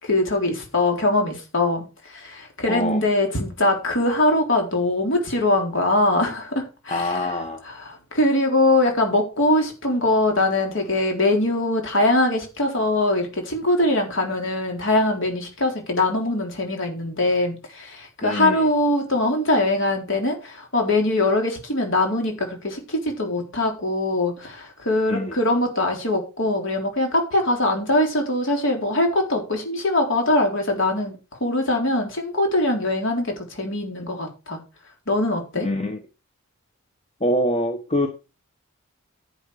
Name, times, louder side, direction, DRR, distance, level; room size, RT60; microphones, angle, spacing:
voice 1, 0.0-7.1 7.9-31.2 31.4-34.6 35.1-35.7, left 2 dB, 55° left, 3.9 m, -22 dB
voice 2, 2.7-3.0 6.9-7.6 18.2-18.7 25.1-25.3 35.6-36.0 37.2-38.1, left 1 dB, 30° left, 1.3 m, -24 dB
11.0 x 8.2 x 4.9 m
head